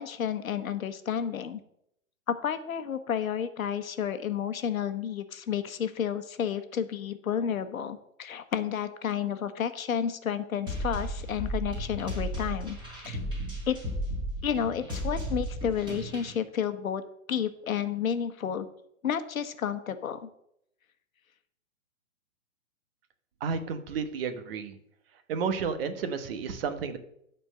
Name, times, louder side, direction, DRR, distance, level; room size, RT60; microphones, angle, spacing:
voice 1, 0.0-1.6 2.3-12.8 13.0-13.2 13.7-13.8 14.4-17.0 17.3-18.7 19.0-20.3, left 8 dB, 80° left, 10 dB, 1.2 m, -31 dB
sound 1, 10.7-16.3, equal, 10° right, 3.6 m, -34 dB
voice 2, 23.4-24.8 25.3-27.0, right 5 dB, 45° right, 9 dB, 1.2 m, -31 dB
12.5 x 4.5 x 6.5 m, 0.76 s
hypercardioid pair, 150°, 41 cm